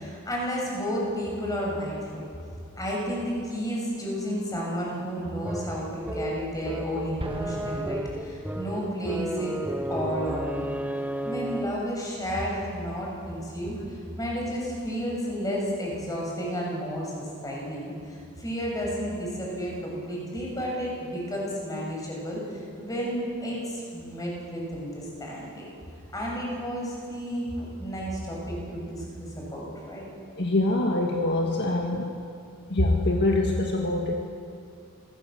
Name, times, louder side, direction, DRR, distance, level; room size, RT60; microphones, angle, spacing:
voice 1, 0.0-2.2 2.8-9.5 9.9-10.7 11.2-25.7 26.1-29.0 29.4-30.1, equal, 15° left, -3 dB, 7.1 m, -32 dB
sound 1, 5.4-11.9, right 1 dB, 10° right, 0.8 m, -33 dB
Explosion, 7.2-9.0, right 1 dB, 25° right, 1.5 m, -40 dB
voice 2, 30.4-32.1 32.7-34.1, left 2 dB, 50° left, 1 dB, 1.8 m, -24 dB
27.5 x 18.0 x 7.8 m, 2.4 s
head